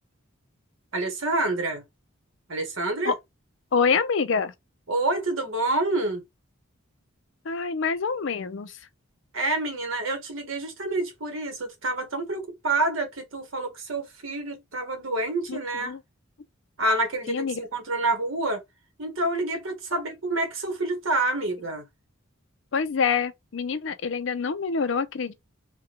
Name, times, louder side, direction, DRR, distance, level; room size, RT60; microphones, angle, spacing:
voice 1, 0.9-1.8 2.5-3.1 4.9-6.2 9.3-15.9 16.8-18.6 19.0-21.8, right 2 dB, 70° right, 1.2 m, -28 dB
voice 2, 3.7-4.5 7.5-8.8 15.5-16.0 17.3-17.6 19.9-20.0 22.7-25.3, left 5 dB, 60° left, 0.5 m, -26 dB
3.5 x 2.2 x 2.9 m
head